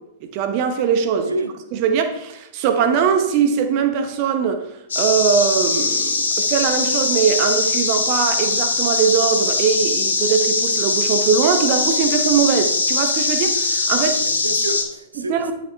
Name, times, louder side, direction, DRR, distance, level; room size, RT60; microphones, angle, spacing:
voice 1, 0.3-1.2 1.8-4.7 5.0-14.1 15.2-15.5, right 7 dB, 40° right, 0.9 m, -20 dB
voice 2, 1.2-1.6 13.9-15.5, right 1 dB, 80° right, 1.1 m, -29 dB
sound 1, 4.9-14.8, left 3 dB, 70° left, 1.9 m, -21 dB
11.0 x 6.0 x 3.4 m
figure-of-eight pair, 100°, 0 cm